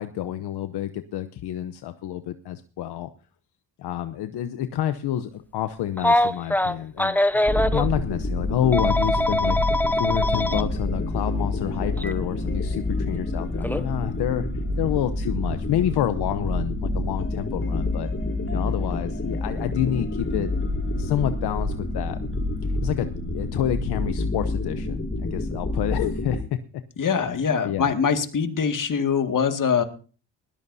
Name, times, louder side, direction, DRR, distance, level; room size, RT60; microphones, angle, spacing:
voice 1, 0.0-3.1 3.8-9.6 9.9-14.5 14.8-18.1 18.5-20.5 20.9-22.2 22.6-26.6 27.1-27.3 27.6-28.0, left 11 dB, 75° left, 10 dB, 0.9 m, -28 dB
Telephone, 6.0-7.9 8.7-10.6 12.0-12.1 13.6-13.8, left 1 dB, 5° left, 0.9 m, -22 dB
sound 1, 7.5-26.4, left 2 dB, 30° left, 6.0 m, -28 dB
voice 2, 27.0-29.8, left 6 dB, 50° left, 7 dB, 2.1 m, -23 dB
20.5 x 14.0 x 2.7 m, 0.38 s
supercardioid pair, 65°, 40 cm